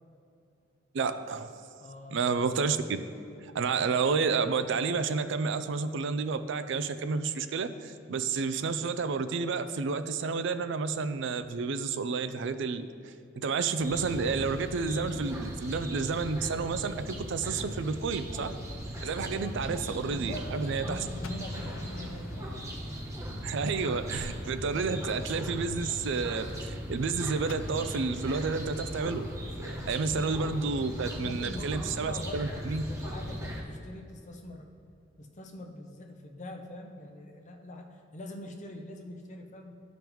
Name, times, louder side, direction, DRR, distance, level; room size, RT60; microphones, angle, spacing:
voice 1, 0.9-1.6 2.1-3.0 3.4-18.5 19.0-21.0 23.4-29.3 29.6-32.8, right 4 dB, 65° right, 11 dB, 0.4 m, -30 dB
voice 2, 1.8-2.3 19.3-19.6 20.1-22.7 29.9-30.3 31.1-34.7 35.2-39.8, left 1 dB, 40° left, 3 dB, 0.7 m, -43 dB
sound 1, 13.8-33.6, equal, 15° right, 0.9 m, -38 dB
Gunshot gunfire, 21.2-24.0 27.5-31.3, left 4 dB, 80° left, 0.4 m, -50 dB
12.0 x 5.2 x 3.1 m, 2.7 s
head